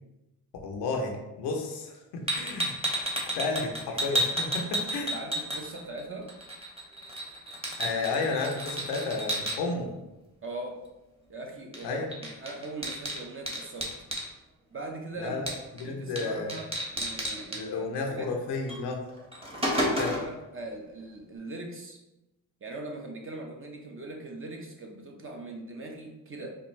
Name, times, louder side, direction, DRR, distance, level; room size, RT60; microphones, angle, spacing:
voice 1, 0.6-2.7 3.3-5.1 7.8-9.9 11.8-12.1 15.2-16.5 17.5-19.0 19.9-20.2, left 3 dB, 90° left, 2 dB, 0.7 m, -32 dB
sound 1, 2.3-6.0 6.3-9.6 11.7-11.9 12.1-14.3 15.5-15.8 16.2-16.3 16.5-17.6 18.7-18.8 19.2-20.3, equal, 15° right, 1.2 m, -31 dB
voice 2, 5.1-6.3 10.4-10.8 11.3-13.9 14.7-15.4 15.7-18.3 19.6-22.0 22.6-26.5, right 2 dB, 30° right, 2 dB, 0.8 m, -40 dB
4.4 x 2.4 x 3.1 m, 0.98 s
supercardioid pair, 60°, 39 cm